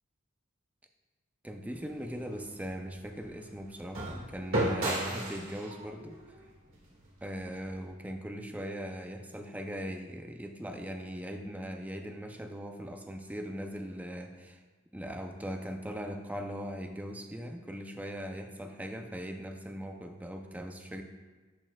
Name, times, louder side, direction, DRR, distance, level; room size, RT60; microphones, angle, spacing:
voice 1, 1.4-6.2 7.2-14.6 14.9-21.0, equal, 10° right, 5 dB, 0.4 m, -40 dB
sound 1, 1.7-7.9, right 1 dB, 85° right, 1.8 m, -36 dB
12.0 x 4.3 x 2.3 m, 1.3 s
head